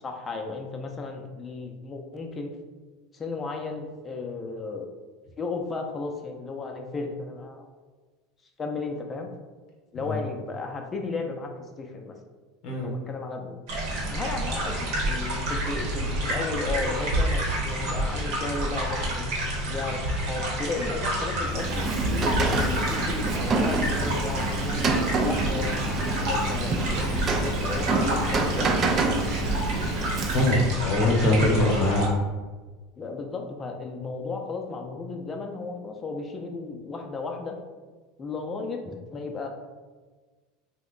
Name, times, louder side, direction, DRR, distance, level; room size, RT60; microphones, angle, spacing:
voice 1, 0.0-2.5 3.1-4.9 5.4-7.7 8.6-9.3 9.9-11.5 11.8-12.2 12.8-13.6 14.1-19.3 19.6-22.3 22.7-24.9 25.2-25.9 26.2-29.0 30.8-30.9 31.5-31.9 33.0-37.6 38.2-39.5, left 3 dB, 25° left, 3 dB, 0.5 m, -34 dB
sound 1, 13.7-32.1, right 1 dB, 65° right, 1.0 m, -29 dB
Rain, 21.4-30.7, right 3 dB, 35° right, 0.4 m, -27 dB
voice 2, 30.3-32.0, left 1 dB, 60° left, -1 dB, 0.9 m, -23 dB
2.8 x 2.1 x 3.8 m, 1.3 s
hypercardioid pair, 95°, 0 cm